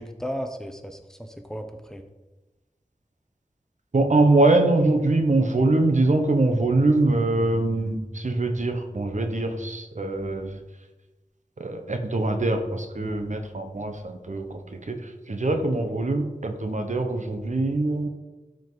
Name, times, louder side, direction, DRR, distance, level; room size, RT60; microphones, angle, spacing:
voice 1, 0.0-2.0, equal, 5° left, 6 dB, 0.9 m, -35 dB
voice 2, 3.9-10.6 11.6-14.6 14.9-18.1, right 2 dB, 65° right, 6 dB, 1.1 m, -23 dB
12.0 x 5.2 x 4.0 m, 1.1 s
wide cardioid pair, 50°, 14 cm